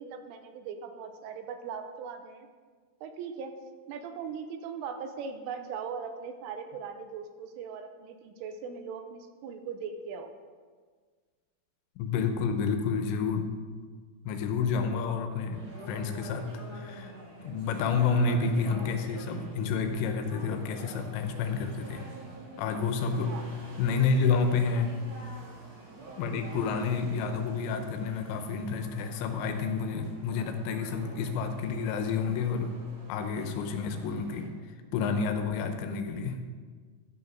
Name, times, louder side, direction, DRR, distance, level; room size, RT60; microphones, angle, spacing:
voice 1, 0.0-2.5 3.0-3.5 3.9-10.3 23.2-23.4, right 6 dB, 85° right, 7 dB, 3.2 m, -39 dB
voice 2, 12.0-13.6 14.3-17.1 17.4-22.1 22.6-23.4 23.8-25.0 26.2-32.7 33.1-34.5 34.9-36.4, left 5 dB, 80° left, 7 dB, 3.3 m, -29 dB
sound 1, 15.5-34.5, right 1 dB, 50° right, 2.2 m, -47 dB
12.5 x 6.9 x 5.1 m, 1.5 s
omnidirectional pair, 5.8 m